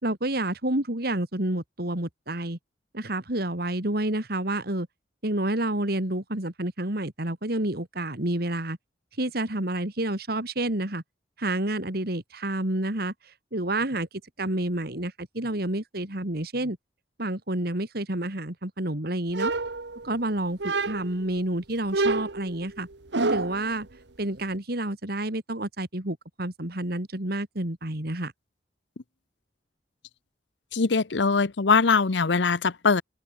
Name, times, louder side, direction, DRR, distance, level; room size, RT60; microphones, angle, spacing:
voice 1, 0.0-2.6 2.9-4.9 5.2-8.8 9.2-11.0 11.4-13.1 13.5-14.1 14.4-16.8 17.2-19.5 20.0-22.9 23.3-23.9 24.2-28.3, right 1 dB, 60° right, 3.2 m, -29 dB
sound 1, 19.3-20.2 20.6-21.2 21.9-23.7, right 3 dB, 75° right, 1.4 m, -28 dB
voice 2, 30.7-33.0, left 4 dB, 85° left, 0.8 m, -22 dB
open air
head